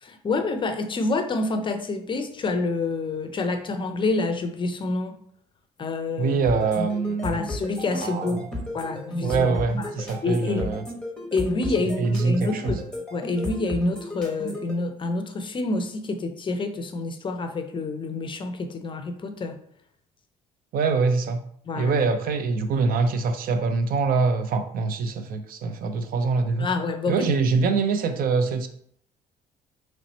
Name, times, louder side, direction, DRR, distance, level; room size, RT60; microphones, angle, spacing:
voice 1, 0.0-5.1 5.8-6.4 7.2-8.5 8.7-9.9 10.2-10.8 11.3-12.8 13.1-19.6 21.7-22.0 26.6-27.3, left 3 dB, 30° left, 6 dB, 0.5 m, -27 dB
voice 2, 6.2-7.4 8.0-8.4 9.2-10.8 12.0-12.8 20.7-21.4 21.8-26.7 27.1-28.7, right 4 dB, 60° right, 9 dB, 0.5 m, -24 dB
sound 1, 6.5-14.7, left 1 dB, 5° left, 1.0 m, -33 dB
3.1 x 2.8 x 4.1 m, 0.66 s
cardioid pair, 110°, 17 cm